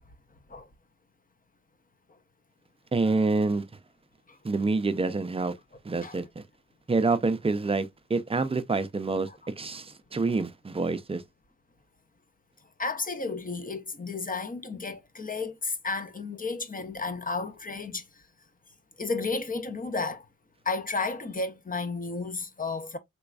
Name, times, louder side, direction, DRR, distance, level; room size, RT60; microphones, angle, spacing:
voice 1, 2.9-3.7 4.4-5.6 5.8-6.4 6.9-9.3 9.6-11.2, right 3 dB, 15° right, 0.6 m, -27 dB
voice 2, 12.8-18.1 19.0-20.3 20.6-23.0, left 3 dB, 25° left, 0.7 m, -32 dB
3.4 x 3.0 x 2.3 m
hypercardioid pair, 45°, 34 cm